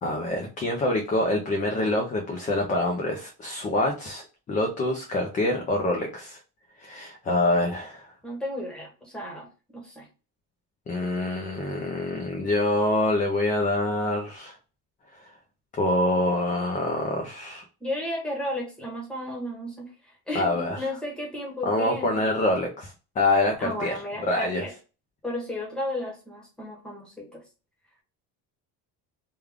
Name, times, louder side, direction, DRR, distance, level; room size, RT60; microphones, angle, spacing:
voice 1, 0.0-6.4 6.8-8.1 10.9-14.6 15.1-15.3 15.7-17.6 20.3-20.9 21.6-24.7, left 2 dB, 20° left, 1 dB, 0.4 m, -26 dB
voice 2, 8.2-9.5 9.7-10.1 17.8-22.2 23.6-24.7 25.2-27.4, left 1 dB, ahead, -2 dB, 1.0 m, -33 dB
3.5 x 2.3 x 3.3 m, 0.33 s
cardioid pair, 175°, 40 cm